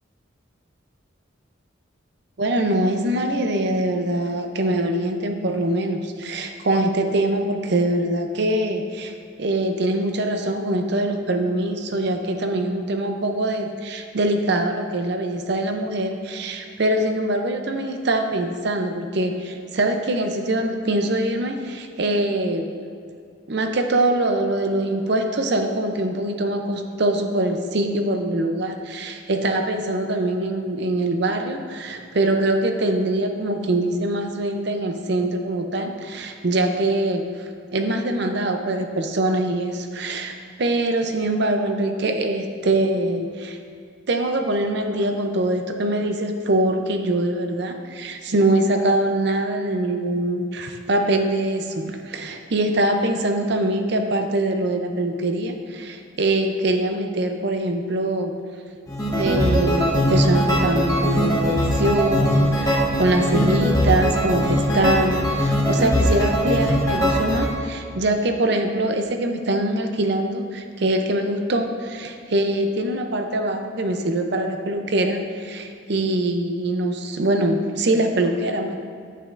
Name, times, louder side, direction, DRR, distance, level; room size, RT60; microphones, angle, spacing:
voice 1, 2.4-22.7 23.5-43.6 44.1-58.3 59.1-78.8, right 1 dB, 55° right, 5 dB, 0.6 m, -23 dB
sound 1, 58.9-67.5, equal, 15° left, 0.9 m, -21 dB
9.9 x 8.5 x 2.5 m, 2.3 s
head